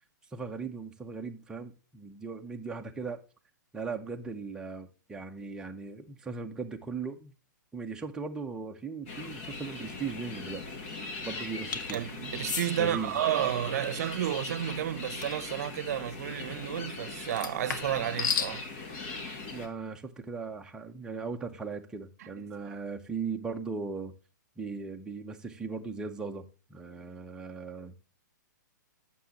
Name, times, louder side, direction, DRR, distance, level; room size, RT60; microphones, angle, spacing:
voice 1, 0.3-3.2 3.7-7.3 7.7-10.6 11.2-12.0 12.8-13.1 19.5-24.1 24.6-27.9, right 4 dB, 5° right, 0.7 m, -38 dB
sound 1, 9.1-19.7, left 3 dB, 40° left, 1.9 m, -40 dB
Opening a bottle, 11.7-12.0 12.4-12.7 15.2-15.4 17.3-18.5, left 7 dB, 70° left, 1.1 m, -32 dB
voice 2, 11.9-18.6 22.2-22.3 22.7-22.8, right 11 dB, 55° right, 0.8 m, -31 dB
9.2 x 7.0 x 2.9 m
hypercardioid pair, 150°, 10 cm